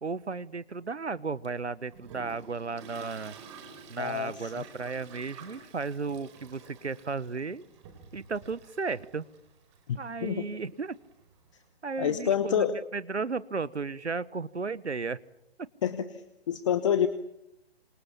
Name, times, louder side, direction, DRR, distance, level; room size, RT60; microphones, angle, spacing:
voice 1, 0.0-3.4 3.9-7.6 8.1-9.3 9.9-11.0 11.8-15.2, right 4 dB, 80° right, 18 dB, 1.3 m, -34 dB
Toilet flush, 1.4-11.7, right 5 dB, 25° right, 4.5 m, -51 dB
voice 2, 4.0-4.6 9.9-10.5 12.0-12.7 15.8-16.1 16.5-17.1, left 9 dB, 30° left, 12 dB, 1.1 m, -27 dB
27.0 x 27.0 x 7.1 m, 0.84 s
figure-of-eight pair, 140°, 34 cm